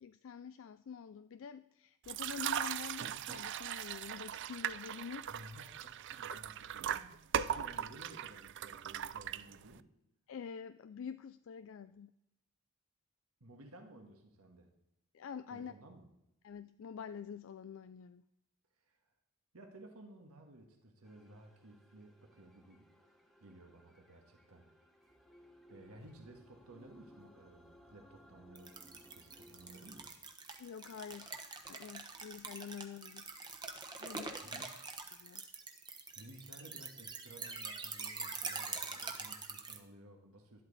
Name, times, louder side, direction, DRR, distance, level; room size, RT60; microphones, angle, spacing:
voice 1, 0.0-5.5 6.3-6.4 7.4-7.5 10.3-12.1 15.1-15.7 16.4-18.2 30.6-31.3 31.7-33.3 34.0-34.7 35.1-35.5, left 7 dB, 60° left, 11 dB, 0.3 m, -47 dB
sound 1, 2.0-9.8, right 9 dB, 55° right, 0.4 m, -39 dB
voice 2, 5.3-5.9 6.2-9.9 13.4-14.8 15.5-16.2 18.8-19.0 19.5-22.9 23.4-24.7 25.7-30.2 34.2-34.8 36.1-40.6, right 1 dB, 80° right, 3 dB, 1.6 m, -56 dB
sound 2, 21.0-30.1, equal, ahead, 1.3 m, -62 dB
sound 3, 28.6-39.8, right 4 dB, 20° right, 1.1 m, -45 dB
12.0 x 12.0 x 4.1 m, 0.87 s
head